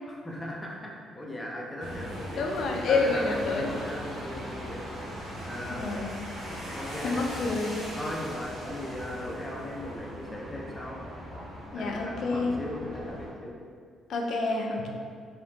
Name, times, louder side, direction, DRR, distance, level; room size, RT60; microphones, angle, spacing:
voice 1, 0.1-5.1 5.4-6.0 6.4-7.2 8.0-11.0 11.7-13.6, left 1 dB, 20° left, -3 dB, 0.6 m, -38 dB
sound 1, 1.8-13.3, equal, 75° right, 1.0 m, -39 dB
voice 2, 2.4-3.7 5.7-6.1 7.0-7.7 11.7-12.5 14.1-14.9, left 3 dB, 65° left, 1 dB, 0.3 m, -28 dB
2.8 x 2.1 x 2.7 m, 2.1 s
hypercardioid pair, 45°, 0 cm